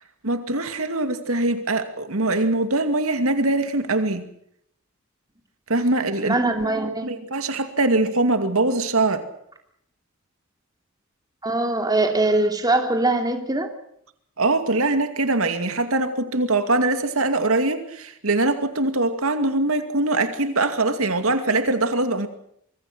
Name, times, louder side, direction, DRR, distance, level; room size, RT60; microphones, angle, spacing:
voice 1, 0.2-4.3 5.7-6.4 7.0-9.2 14.4-22.3, right 2 dB, 75° right, 8 dB, 2.4 m, -22 dB
voice 2, 6.2-7.1 11.4-13.7, right 2 dB, 20° right, 4 dB, 2.9 m, -22 dB
25.0 x 23.0 x 6.2 m, 0.72 s
head